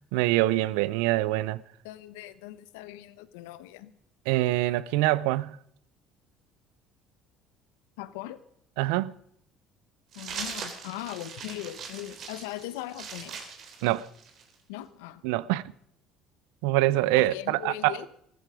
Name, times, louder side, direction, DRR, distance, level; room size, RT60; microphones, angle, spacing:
voice 1, 0.1-1.6 4.3-5.6 8.8-9.1 13.8-14.1 15.2-15.6 16.6-17.9, right 17 dB, 80° right, 0.6 m, -24 dB
voice 2, 1.8-3.9 8.0-8.4 10.1-13.5 14.7-15.2 17.2-18.1, left 14 dB, 80° left, 1.0 m, -39 dB
sound 1, 10.1-14.5, right 6 dB, 60° right, 3.2 m, -40 dB
15.0 x 13.5 x 5.1 m
hypercardioid pair, 70°, 0 cm